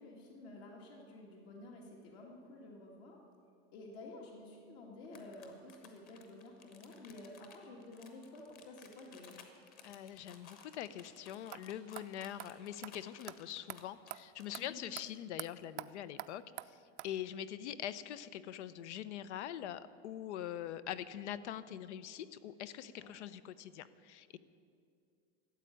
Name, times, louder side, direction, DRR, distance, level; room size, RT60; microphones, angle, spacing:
voice 1, 0.0-3.2 3.7-9.4 14.5-14.8 23.0-23.1, left 2 dB, 65° left, -1 dB, 2.4 m, -51 dB
sound 1, 5.0-14.7, left 6 dB, 25° left, 1.1 m, -58 dB
voice 2, 9.8-24.4, left 11 dB, 80° left, 15 dB, 0.8 m, -44 dB
sound 2, 11.5-11.6 12.0-12.1 12.4-12.5 12.8-12.9 13.3-13.4 13.7-13.8 14.1-14.2 14.5-14.6 15.0-15.1 15.4-15.5 15.8-15.9 16.2-16.3 16.6-16.7 17.0-17.1, right 17 dB, 80° right, 0.6 m, -44 dB
13.5 x 8.1 x 10.0 m, 2.3 s
supercardioid pair, 170°, 34 cm